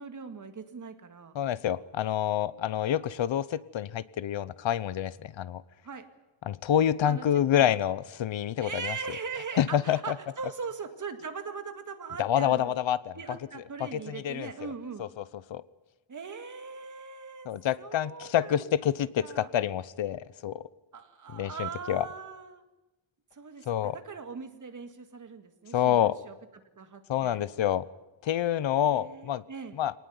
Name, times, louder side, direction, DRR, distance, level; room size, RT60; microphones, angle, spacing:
voice 1, 0.0-1.4 5.8-6.0 7.0-7.8 8.6-12.7 13.2-15.0 16.1-17.5 17.8-18.9 19.2-19.5 20.9-22.6 23.3-26.3 26.8-27.4 28.9-29.8, right 5 dB, 40° right, 7 dB, 2.1 m, -40 dB
voice 2, 1.3-5.6 6.5-9.2 9.6-10.2 12.2-13.2 13.8-14.7 15.0-15.2 15.5-15.6 17.4-20.6 21.3-22.1 23.7-24.0 25.7-26.2 27.1-27.9 28.2-29.4 29.8-29.9, left 10 dB, 75° left, 18 dB, 0.9 m, -27 dB
24.5 x 19.0 x 9.6 m, 1.0 s
wide cardioid pair, 175°, 46 cm